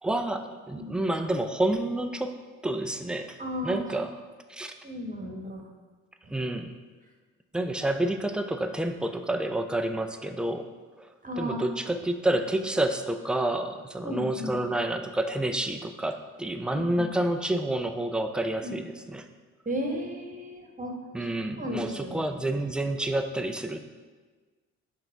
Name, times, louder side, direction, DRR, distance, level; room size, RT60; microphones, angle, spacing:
voice 1, 0.0-3.4 3.6-4.2 4.5-4.7 6.3-6.7 7.5-10.7 11.0-19.3 21.1-23.8, right 1 dB, ahead, 7 dB, 0.4 m, -29 dB
voice 2, 3.4-3.8 4.8-5.7 6.2-6.3 11.2-11.6 11.9-12.1 14.0-14.6 16.7-17.1 18.6-18.8 19.6-22.4, equal, 20° right, 1 dB, 1.1 m, -35 dB
5.9 x 3.9 x 4.5 m, 1.4 s
hypercardioid pair, 55°, 38 cm